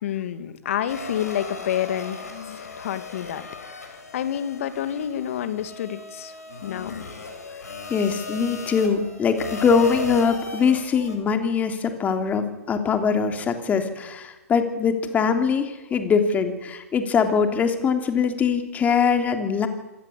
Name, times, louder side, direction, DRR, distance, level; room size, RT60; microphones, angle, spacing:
voice 1, 0.0-3.9 4.1-6.3 6.6-7.2, left 10 dB, 55° left, 11 dB, 2.6 m, -29 dB
sound 1, 0.9-11.2, left 3 dB, 80° left, 6.8 m, -37 dB
voice 2, 7.9-19.7, left 6 dB, 20° left, 7 dB, 3.2 m, -22 dB
26.0 x 18.5 x 8.6 m, 1.1 s
hypercardioid pair, 125°, 8 cm